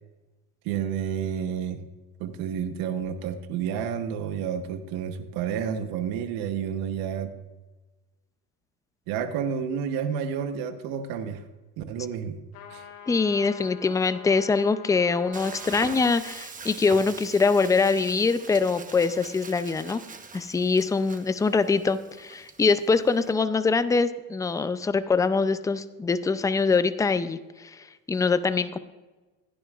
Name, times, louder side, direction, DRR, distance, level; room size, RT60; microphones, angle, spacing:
voice 1, 0.6-1.8 2.2-7.3 9.1-11.4 11.8-12.4 12.7-12.8, right 8 dB, 75° right, 8 dB, 1.1 m, -30 dB
sound 1, 12.5-16.4, left 6 dB, 70° left, 2.6 m, -45 dB
voice 2, 13.1-20.0 20.3-27.7 28.1-28.8, left 4 dB, 10° left, 13 dB, 0.4 m, -23 dB
Frying (food), 15.3-23.3, right 5 dB, 20° right, 1.0 m, -43 dB
16.0 x 10.0 x 2.4 m, 1.2 s
supercardioid pair, 100°, 37 cm